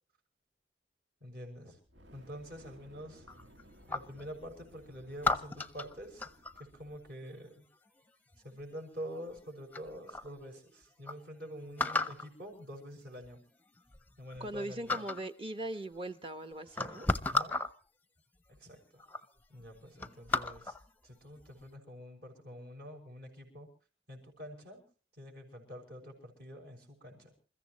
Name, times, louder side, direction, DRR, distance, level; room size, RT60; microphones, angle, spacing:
voice 1, 1.2-1.8 2.1-3.3 3.9-7.6 8.4-13.4 14.2-15.1 16.7-17.6 18.6-19.0 19.5-20.8 21.0-23.7 24.1-24.8 25.1-27.3, equal, 55° right, 6.5 m, -47 dB
Fire, 1.8-7.1, equal, 75° right, 1.7 m, -59 dB
sound 1, 3.3-4.2 5.2-6.6 8.3-8.7 9.4-9.5 9.7-10.3 10.7-10.8 11.1-11.2 11.8-12.3 13.2-13.3 13.8-14.6 14.9-15.3 16.2-16.3 16.7-17.7 18.5-18.6 19.0-19.2 19.6-20.9 21.4-21.6, left 3 dB, 10° left, 0.7 m, -34 dB
voice 2, 14.4-17.1, right 1 dB, 30° right, 1.1 m, -40 dB
28.5 x 14.5 x 3.1 m
head